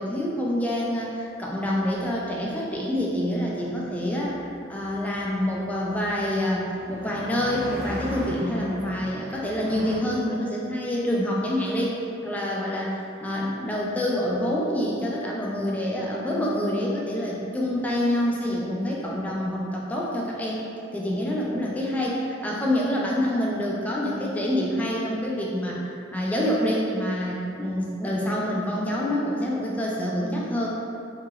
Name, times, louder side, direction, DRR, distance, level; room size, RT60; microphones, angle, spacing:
voice 1, 0.0-12.0 12.2-20.6 20.9-25.8 26.1-30.7, left 1 dB, 10° left, -4 dB, 0.3 m, -27 dB
sound 1, 1.5-10.0, equal, 50° right, 0.6 m, -40 dB
2.9 x 2.8 x 2.4 m, 2.5 s
head